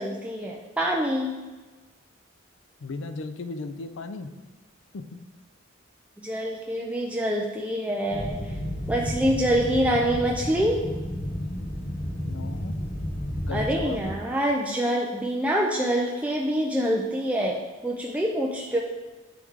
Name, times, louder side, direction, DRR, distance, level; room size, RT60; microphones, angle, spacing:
voice 1, 0.0-1.4 6.2-8.4 8.9-10.8 13.5-18.8, equal, 5° right, -2 dB, 0.5 m, -26 dB
voice 2, 2.8-4.3 4.9-5.1 12.2-12.8 13.4-14.0, left 3 dB, 65° left, 10 dB, 0.5 m, -35 dB
sound 1, 8.1-14.1, equal, 50° left, 1.0 m, -32 dB
9.6 x 3.3 x 3.6 m, 1.3 s
head